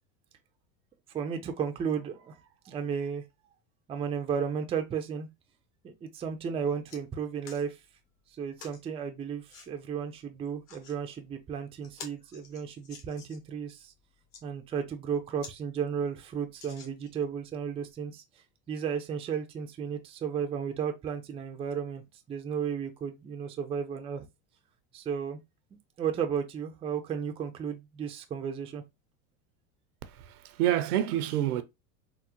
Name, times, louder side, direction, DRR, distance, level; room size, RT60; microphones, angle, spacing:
voice 1, 1.1-3.2 3.9-5.3 5.8-7.8 8.4-13.9 14.4-18.2 18.7-22.0 22.3-24.3 24.9-25.4 26.0-28.8, right 7 dB, 15° right, 0.3 m, -34 dB
sound 1, 6.2-6.3 6.6-7.0 7.4-7.7 8.6-8.8 9.5-9.7 10.5-11.0 11.4-11.5 11.8-13.5 14.1-14.4 15.0-15.1 15.4-15.6 15.9-16.0 16.5-17.3 17.9-18.0, left 5 dB, 50° left, 1.2 m, -49 dB
voice 2, 30.0-31.6, right 12 dB, 85° right, 0.6 m, -28 dB
3.6 x 2.0 x 2.9 m
supercardioid pair, 105°, 44 cm